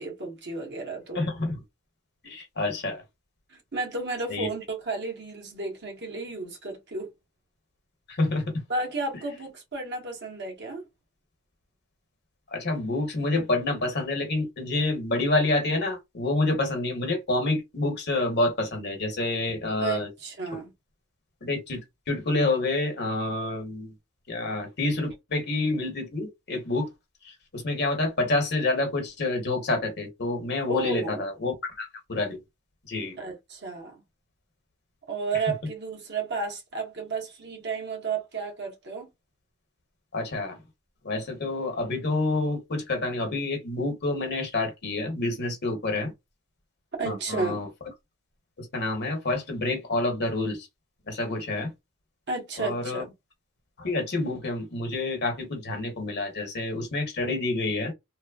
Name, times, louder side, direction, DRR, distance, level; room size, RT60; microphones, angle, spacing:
voice 1, 0.0-1.2 3.5-7.1 8.7-10.8 19.8-20.7 30.7-31.2 33.2-34.0 35.1-39.1 47.0-47.6 52.3-53.1, right 3 dB, 55° right, 1.1 m, -32 dB
voice 2, 1.1-1.6 2.2-3.0 4.3-4.5 8.1-8.4 12.5-20.1 21.4-23.9 24.3-26.9 27.2-32.4 32.9-33.2 40.1-40.6 41.0-46.1 47.0-47.7 48.6-50.7 51.1-51.7 52.6-53.0 53.8-57.9, left 2 dB, 50° left, 1.1 m, -28 dB
3.0 x 2.1 x 2.3 m
head